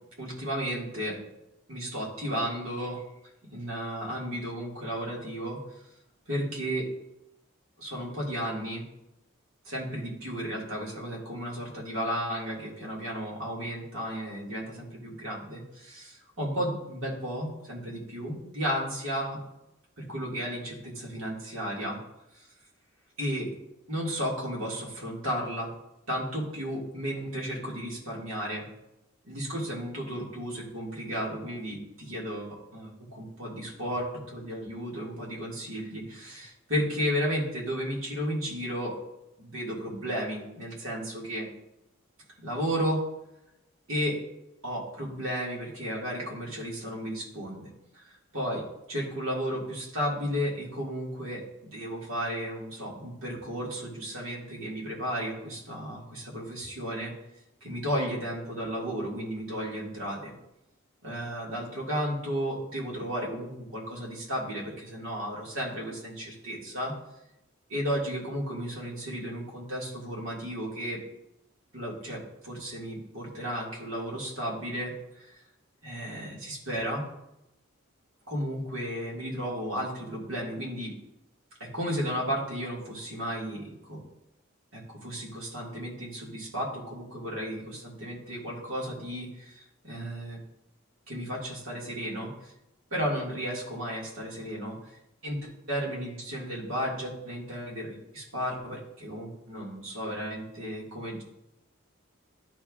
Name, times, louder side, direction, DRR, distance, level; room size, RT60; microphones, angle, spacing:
voice 1, 0.2-1.2 1.7-3.0 3.5-5.8 6.3-6.9 7.8-8.8 9.6-19.4 20.0-22.0 22.3-22.5 23.2-23.5 23.9-25.7 26.1-28.6 29.2-38.9 39.4-41.5 42.4-43.0 43.9-44.2 44.6-47.7 47.9-51.4 51.7-57.1 57.6-60.3 61.0-66.9 67.7-71.0 71.7-75.4 75.8-77.0 78.3-80.9 81.6-84.0 84.7-90.4 91.1-92.5 92.9-94.9 95.2-101.2, equal, 75° right, -4 dB, 2.0 m, -33 dB
11.5 x 4.4 x 2.4 m, 0.88 s
head